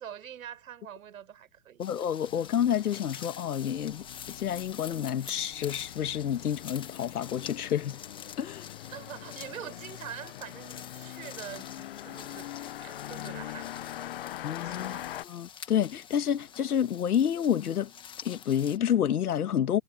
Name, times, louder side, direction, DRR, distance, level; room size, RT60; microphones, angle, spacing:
voice 1, 0.0-1.8 8.9-12.5 12.8-14.1 14.6-15.1, right 10 dB, 65° right, 6.5 m, -44 dB
voice 2, 1.8-8.0 8.4-8.7 14.4-15.0 15.2-17.9 18.2-19.8, left 9 dB, 80° left, 1.8 m, -29 dB
sound 1, 1.8-18.8, left 8 dB, 10° left, 1.4 m, -47 dB
sound 2, 2.2-15.3, left 13 dB, 40° left, 0.6 m, -43 dB
hypercardioid pair, 155°, 44 cm